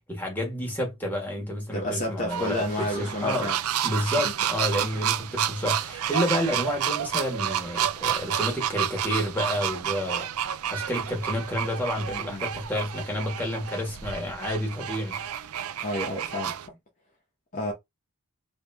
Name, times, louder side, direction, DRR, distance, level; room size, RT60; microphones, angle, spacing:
voice 1, 0.1-3.5 3.8-10.3 10.7-15.2, left 1 dB, 10° left, 1.7 m, -30 dB
voice 2, 1.7-3.6 12.1-12.4 15.8-16.6 17.5-17.7, left 1 dB, 35° left, 1.0 m, -30 dB
sound 1, 2.3-16.7, right 9 dB, 75° right, 0.5 m, -30 dB
3.4 x 2.9 x 3.4 m
head